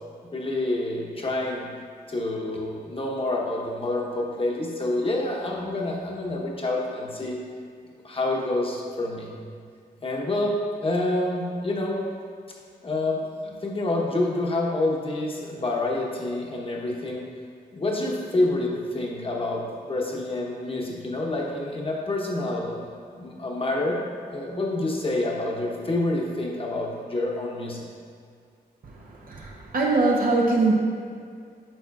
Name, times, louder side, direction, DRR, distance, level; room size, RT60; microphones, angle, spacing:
voice 1, 0.3-1.7 2.1-7.4 8.0-9.3 10.0-12.0 12.8-17.2 17.7-22.8 23.1-24.0 24.3-27.9, left 2 dB, 35° left, -2 dB, 1.0 m, -27 dB
voice 2, 29.3-30.7, right 3 dB, 60° right, -2 dB, 0.7 m, -22 dB
8.7 x 5.6 x 2.4 m, 2.2 s
wide cardioid pair, 135°, 16 cm